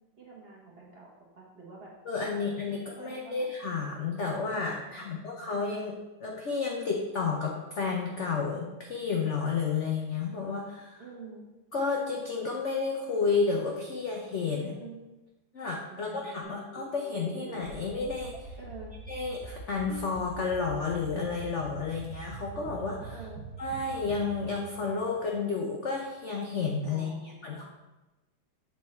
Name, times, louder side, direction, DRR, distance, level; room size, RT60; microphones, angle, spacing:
voice 1, 0.2-1.9 2.3-3.5 4.8-5.5 11.0-11.4 14.5-15.0 15.9-16.6 18.6-18.9 23.1-23.4 26.9-27.6, right 4 dB, 35° right, -3 dB, 1.3 m, -48 dB
voice 2, 2.1-11.0 11.7-14.8 15.5-18.5 19.1-23.2 23.6-27.6, left 4 dB, 80° left, -1 dB, 0.6 m, -31 dB
sound 1, 16.4-25.8, right 3 dB, 65° right, 1.1 m, -44 dB
7.3 x 3.6 x 4.4 m, 1.1 s
omnidirectional pair, 2.2 m